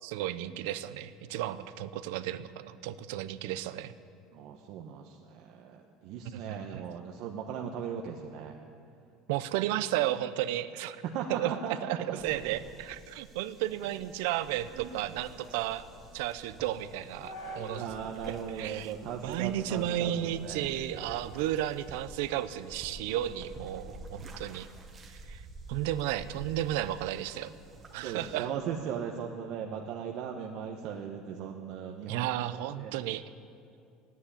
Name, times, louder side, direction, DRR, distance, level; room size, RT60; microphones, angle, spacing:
voice 1, 0.0-3.9 6.3-6.8 9.3-11.0 11.3-11.5 11.8-15.8 16.1-17.9 18.3-18.9 19.2-24.7 25.3-25.4 25.7-27.5 27.9-28.5 32.1-33.2, right 13 dB, 90° right, 14 dB, 0.6 m, -33 dB
voice 2, 4.3-8.5 11.0-12.4 14.7-14.9 17.8-20.7 25.7-25.8 28.0-32.4 32.8-33.1, right 7 dB, 60° right, 1 dB, 1.0 m, -38 dB
sound 1, 12.2-28.4, right 2 dB, 25° right, 1.3 m, -50 dB
sound 2, 13.6-18.1 18.4-18.5 19.1-19.5 19.9-21.9 22.3-24.8, equal, 85° left, 3.3 m, -50 dB
14.0 x 9.5 x 10.0 m, 2.5 s
cardioid pair, 160°, 0 cm